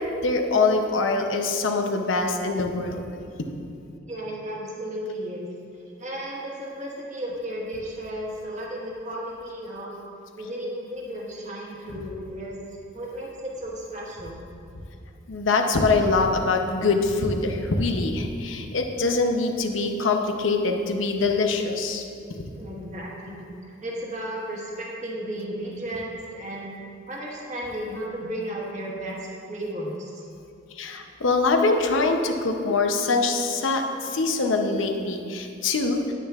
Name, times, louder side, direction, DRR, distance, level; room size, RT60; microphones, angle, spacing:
voice 1, 0.0-3.0 15.3-22.0 22.3-22.4 30.8-36.1, left 3 dB, 80° left, 4 dB, 0.7 m, -24 dB
voice 2, 4.1-5.5 6.0-9.9 10.4-12.6 12.9-14.5 22.6-26.8 27.1-30.2, right 1 dB, 40° right, -4 dB, 1.4 m, -34 dB
10.0 x 9.1 x 2.4 m, 2.5 s
head